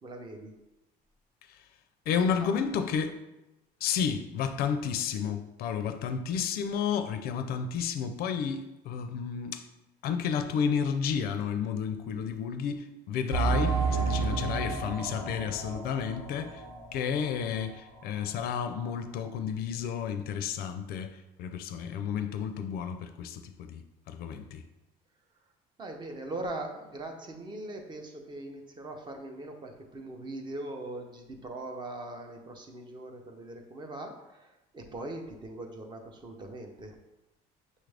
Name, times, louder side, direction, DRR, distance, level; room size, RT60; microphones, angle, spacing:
voice 1, 0.0-0.5 2.2-2.5 25.8-37.0, right 2 dB, 25° right, 4 dB, 0.6 m, -41 dB
voice 2, 2.1-3.2 3.8-9.7 10.0-16.6 16.9-24.6, left 7 dB, 65° left, 8 dB, 0.4 m, -31 dB
sound 1, 13.3-17.6 17.9-18.0 18.6-18.7, right 4 dB, 85° right, 1.5 m, -31 dB
6.3 x 2.5 x 3.3 m, 0.98 s
cardioid pair, 135°, 17 cm